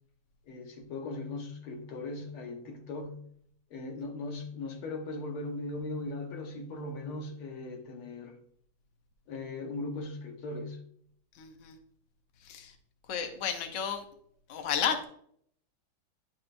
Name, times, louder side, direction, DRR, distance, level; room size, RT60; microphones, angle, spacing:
voice 1, 0.4-3.2 3.7-8.4 9.3-10.8, left 2 dB, 85° left, 1.9 m, -38 dB
voice 2, 11.4-11.8 12.4-12.7 13.1-14.0 14.5-15.0, left 7 dB, 60° left, 0.8 m, -32 dB
10.0 x 4.4 x 2.5 m
omnidirectional pair, 2.3 m